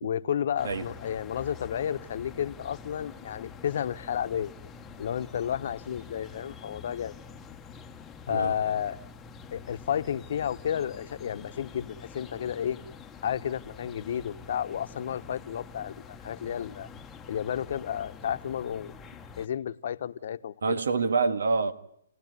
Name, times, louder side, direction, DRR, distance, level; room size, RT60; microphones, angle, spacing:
voice 1, 0.0-4.5 5.0-7.1 8.3-9.0 9.5-12.8 13.2-16.9 17.3-18.9 19.4-20.8, left 9 dB, 55° left, 10 dB, 1.1 m, -32 dB
sound 1, 0.6-19.5, left 5 dB, 10° left, 1.1 m, -46 dB
voice 2, 20.6-21.7, right 4 dB, 80° right, 12 dB, 1.8 m, -26 dB
29.5 x 17.5 x 9.6 m, 0.74 s
hypercardioid pair, 150°, 0 cm